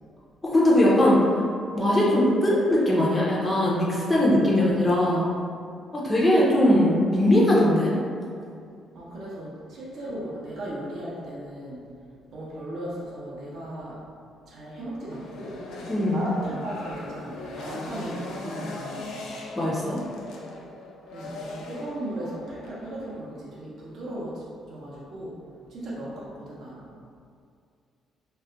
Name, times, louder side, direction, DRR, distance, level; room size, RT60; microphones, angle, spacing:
voice 1, 0.4-1.3 1.7-5.3 5.9-7.9 15.9-16.2 19.6-20.0, left 1 dB, 15° left, -6 dB, 0.4 m, -20 dB
voice 2, 8.9-11.9 12.3-14.0 14.5-15.6 16.1-19.1 19.7-20.1 21.1-25.4 25.7-26.9, right 1 dB, 55° right, -6 dB, 0.5 m, -37 dB
sound 1, 15.1-23.2, left 2 dB, 80° left, 0.4 m, -39 dB
2.3 x 2.1 x 3.7 m, 2.3 s
cardioid pair, 150°, 0 cm